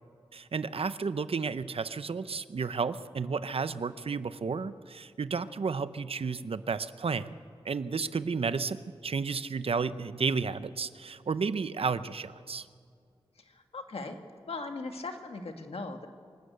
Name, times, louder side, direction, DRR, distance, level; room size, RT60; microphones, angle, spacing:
voice 1, 0.3-7.3 7.6-12.7, right 5 dB, 75° right, 13 dB, 0.7 m, -32 dB
voice 2, 13.4-14.2 14.5-16.1, left 3 dB, 80° left, 5 dB, 1.6 m, -39 dB
25.5 x 13.0 x 8.0 m, 2.2 s
wide cardioid pair, 75°, 10 cm